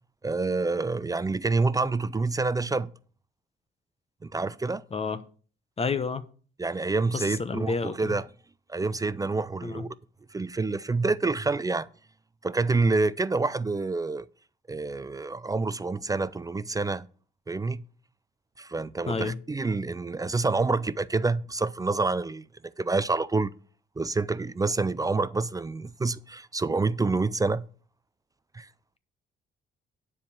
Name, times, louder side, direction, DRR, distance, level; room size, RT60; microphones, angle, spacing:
voice 1, 0.2-2.9 4.2-4.8 6.6-8.3 8.7-9.9 10.3-11.9 12.4-14.3 14.7-17.1 17.5-17.8 18.6-22.4 22.8-23.5 24.0-27.6 28.5-28.7, right 3 dB, 20° right, 0.4 m, -27 dB
voice 2, 5.8-6.2 7.1-8.1 9.6-9.8 19.1-19.4, left 4 dB, 30° left, 0.9 m, -29 dB
10.5 x 4.8 x 7.1 m
cardioid pair, 90°, 20 cm